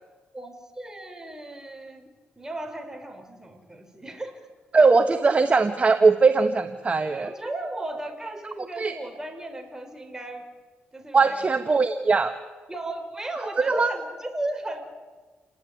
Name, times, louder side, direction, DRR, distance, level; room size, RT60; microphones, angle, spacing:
voice 1, 0.3-2.1 2.4-4.4 7.2-10.4 10.9-11.5 12.7-14.8, right 2 dB, 15° right, 5 dB, 5.1 m, -35 dB
voice 2, 4.7-7.3 8.8-8.9 11.1-12.3 13.6-13.9, right 4 dB, 30° right, 8 dB, 1.5 m, -20 dB
28.5 x 18.5 x 9.6 m, 1.3 s
cardioid pair, 80°, 4 cm